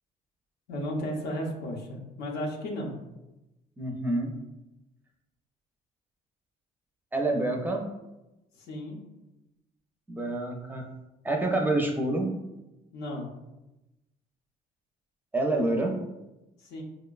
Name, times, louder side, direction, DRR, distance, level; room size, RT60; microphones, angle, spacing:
voice 1, 0.7-2.9 8.5-9.0 12.9-13.3 16.6-16.8, equal, 80° left, 0 dB, 0.7 m, -34 dB
voice 2, 3.8-4.3 7.1-7.8 10.1-10.9 11.2-12.3 15.3-15.9, right 2 dB, 10° right, 1 dB, 0.4 m, -27 dB
4.8 x 2.1 x 2.3 m, 0.99 s
cardioid pair, 110°, 17 cm